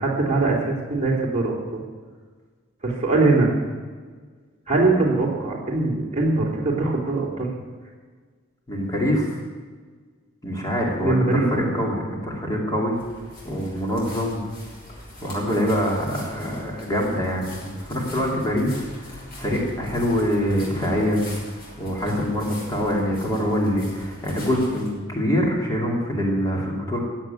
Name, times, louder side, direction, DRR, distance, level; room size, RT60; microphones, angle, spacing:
voice 1, 0.0-1.8 2.8-3.5 4.7-7.5 11.0-11.5, right 3 dB, 30° right, -2 dB, 3.3 m, -22 dB
voice 2, 8.7-9.4 10.4-13.0 13.4-14.4 15.2-21.3 21.8-27.0, equal, 15° left, -2 dB, 2.7 m, -24 dB
sound 1, 12.9-24.9, left 1 dB, 45° left, 5.9 m, -42 dB
16.0 x 8.0 x 9.0 m, 1.5 s
head